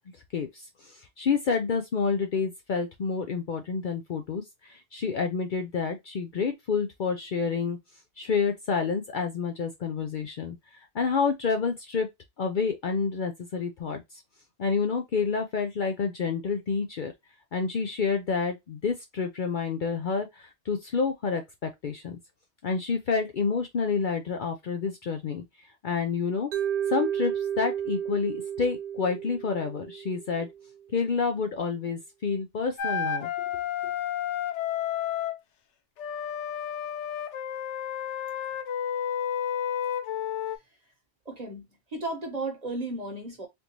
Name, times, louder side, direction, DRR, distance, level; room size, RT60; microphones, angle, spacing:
voice 1, 0.3-7.8 8.2-12.1 12.4-14.0 14.6-17.1 17.5-22.2 22.6-25.4 25.8-26.5 26.9-30.5 30.9-33.3 33.8-33.9, left 5 dB, 55° left, 0.6 m, -29 dB
Mallet percussion, 26.5-30.6, right 9 dB, 60° right, 0.7 m, -32 dB
Wind instrument woodwind instrument, 32.8-35.4 36.0-40.6, left 9 dB, 85° left, 0.9 m, -31 dB
voice 2, 41.3-41.6 41.9-43.5, right 2 dB, 35° right, 1.1 m, -34 dB
3.5 x 2.6 x 2.9 m
omnidirectional pair, 1.2 m